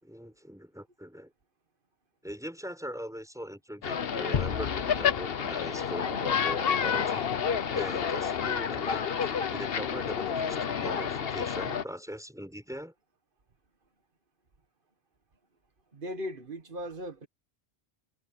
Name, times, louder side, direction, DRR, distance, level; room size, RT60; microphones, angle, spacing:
voice 1, 0.0-1.3 2.2-7.3 7.7-9.1 9.5-12.9, equal, 5° right, 5.8 m, -40 dB
sound 1, 3.8-11.8, left 7 dB, 65° left, 1.1 m, -30 dB
sound 2, 4.3-6.3, left 7 dB, 50° left, 0.9 m, -35 dB
voice 2, 15.9-17.3, equal, 55° right, 1.8 m, -38 dB
omnidirectional pair, 1.1 m